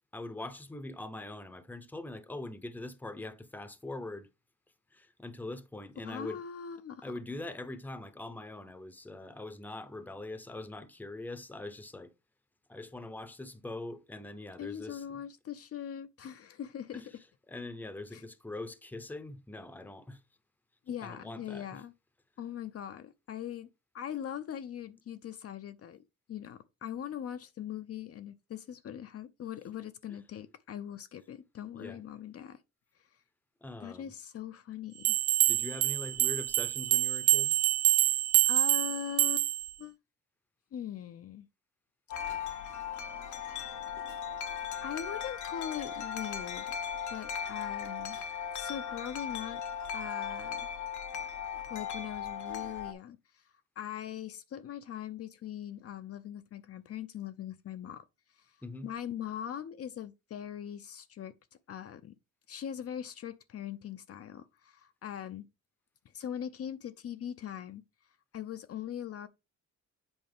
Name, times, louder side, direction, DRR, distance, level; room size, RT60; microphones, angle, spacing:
voice 1, 0.1-4.3 4.9-6.4 7.0-12.1 12.7-15.2 16.9-20.2 21.0-21.8 31.7-32.0 33.6-34.1 35.5-37.6 58.6-58.9, left 2 dB, 5° left, 0.7 m, -43 dB
voice 2, 6.0-7.1 14.6-17.0 18.1-18.2 20.9-21.9 22.4-23.7 23.9-26.0 26.3-32.6 33.8-35.2 38.5-39.5 39.8-40.0 40.7-41.5 44.7-46.8 47.1-48.2 48.5-49.6 49.9-50.7 51.7-53.4 53.8-58.0 58.4-58.5 58.8-61.3 61.7-62.1 62.5-65.5 66.1-67.8 68.3-69.3, left 9 dB, 50° left, 0.6 m, -41 dB
sound 1, 35.0-39.7, right 16 dB, 65° right, 0.5 m, -26 dB
Wind chime, 42.1-52.9, left 7 dB, 75° left, 0.9 m, -38 dB
8.0 x 4.3 x 3.5 m
cardioid pair, 90°, 30 cm